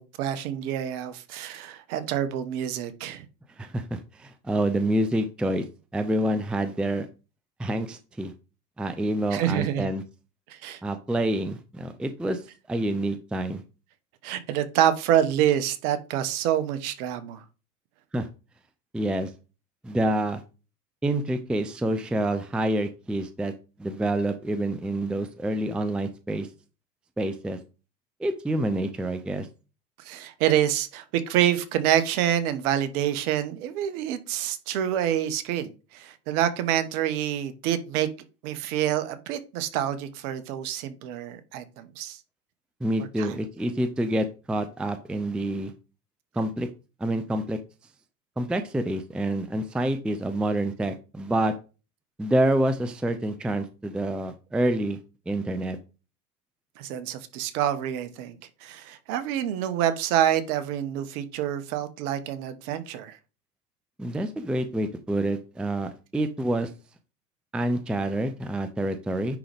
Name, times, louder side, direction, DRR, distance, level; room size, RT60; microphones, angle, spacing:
voice 1, 0.0-3.3 9.3-9.9 10.5-10.8 14.2-17.4 30.0-38.1 38.4-42.2 43.2-43.4 56.8-63.2, right 11 dB, 60° right, 1.3 m, -27 dB
voice 2, 3.6-5.7 5.9-7.1 7.6-8.3 8.8-10.0 10.8-12.4 12.7-13.6 18.1-18.3 18.9-19.3 19.8-20.4 21.0-23.5 23.8-26.5 27.2-27.6 28.2-29.5 42.8-45.7 46.3-46.7 47.0-47.6 48.4-51.5 52.2-55.0 55.3-55.8 64.0-66.7 67.5-69.4, right 1 dB, ahead, 0.5 m, -27 dB
9.9 x 3.8 x 3.5 m
hypercardioid pair, 105°, 48 cm